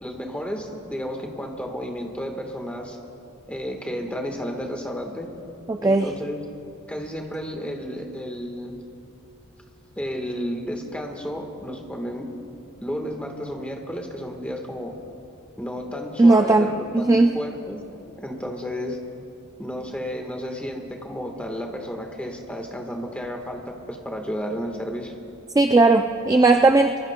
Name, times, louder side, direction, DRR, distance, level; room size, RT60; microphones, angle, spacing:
voice 1, 0.0-3.0 3.5-5.3 5.8-6.4 6.9-8.8 10.0-12.3 12.8-15.0 15.6-19.0 19.6-25.1, equal, 5° left, 2 dB, 1.3 m, -32 dB
voice 2, 5.7-6.1 16.2-17.3 25.6-27.0, right 2 dB, 15° right, 5 dB, 0.3 m, -17 dB
24.0 x 21.5 x 2.2 m, 2.6 s
head